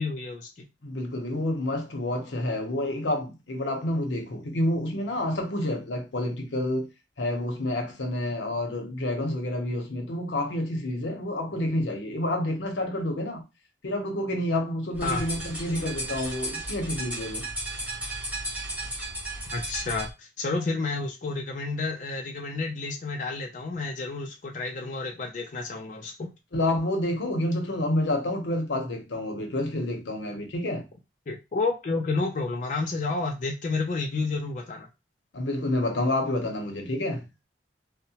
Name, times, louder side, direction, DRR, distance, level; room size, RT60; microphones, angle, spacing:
voice 1, 0.0-0.7 15.0-15.2 19.5-26.3 31.3-34.9, left 3 dB, 45° left, 0.4 m, -30 dB
voice 2, 0.8-6.9 7.2-13.4 13.8-17.5 26.5-30.8 35.3-37.2, left 1 dB, 85° left, 0.7 m, -29 dB
sound 1, 14.9-20.1, right 1 dB, 10° right, 1.0 m, -34 dB
2.8 x 2.1 x 2.8 m
head